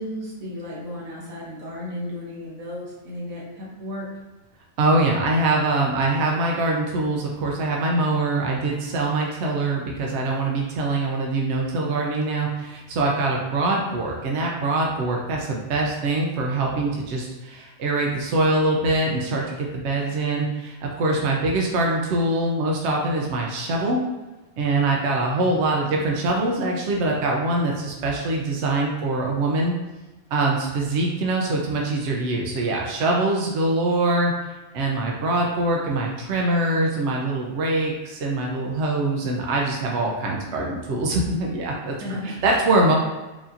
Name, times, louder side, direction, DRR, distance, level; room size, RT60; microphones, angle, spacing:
voice 1, 0.0-4.1 42.0-42.3, left 1 dB, 85° right, -5 dB, 1.5 m, -34 dB
voice 2, 4.8-24.0 24.6-29.7 30.3-34.3 34.7-41.9 42.2-42.9, right 2 dB, 65° right, -1 dB, 0.8 m, -23 dB
4.8 x 2.7 x 2.5 m, 1.1 s
omnidirectional pair, 1.4 m